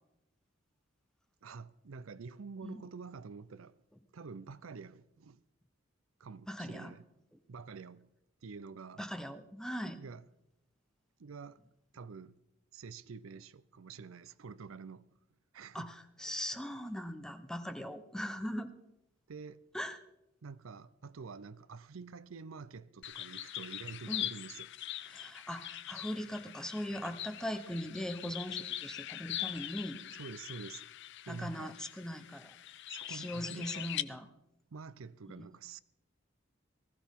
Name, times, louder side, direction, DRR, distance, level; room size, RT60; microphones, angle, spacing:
voice 1, 1.4-3.8 4.1-5.4 6.2-7.1 7.5-8.1 8.4-9.0 10.0-10.2 11.2-11.6 11.9-12.4 12.7-15.1 15.5-15.9 19.3-19.6 20.4-24.7 30.1-30.9 31.2-31.8 32.9-34.0 34.7-35.8, right 5 dB, 85° right, 0.6 m, -47 dB
voice 2, 6.5-6.9 9.0-10.0 15.7-18.7 19.7-20.0 24.1-24.3 25.1-30.0 31.3-32.5 33.1-34.3 35.3-35.5, equal, 5° left, 0.7 m, -40 dB
sound 1, 23.0-34.0, left 12 dB, 60° left, 0.5 m, -42 dB
19.0 x 15.5 x 3.6 m
head